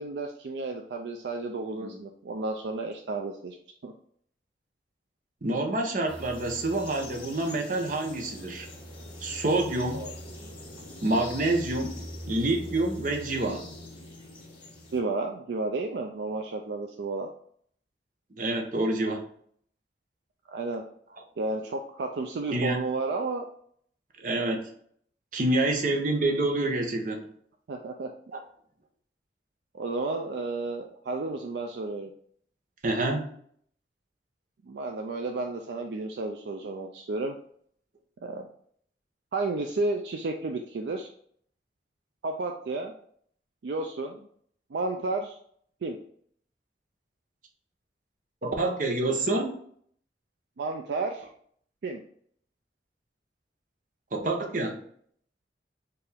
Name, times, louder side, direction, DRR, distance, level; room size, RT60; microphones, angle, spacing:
voice 1, 0.0-3.6 3.8-3.9 9.9-10.1 14.9-17.3 20.5-20.8 21.4-23.5 27.7-28.1 29.7-32.1 34.6-37.4 38.2-38.5 39.3-41.1 42.2-42.9 43.6-44.3 44.7-45.4 45.8-46.0 50.6-51.3 51.8-52.0, right 3 dB, 70° right, 3 dB, 0.4 m, -32 dB
voice 2, 5.4-8.7 9.2-10.0 11.0-12.0 12.3-13.6 18.4-19.3 22.5-22.8 24.2-24.6 25.3-27.3 32.8-33.3 48.4-49.5 54.1-54.8, right 2 dB, 45° right, 2 dB, 0.7 m, -27 dB
sound 1, 6.1-15.0, left 1 dB, 30° left, 1.2 m, -42 dB
4.5 x 2.5 x 3.4 m, 0.62 s
head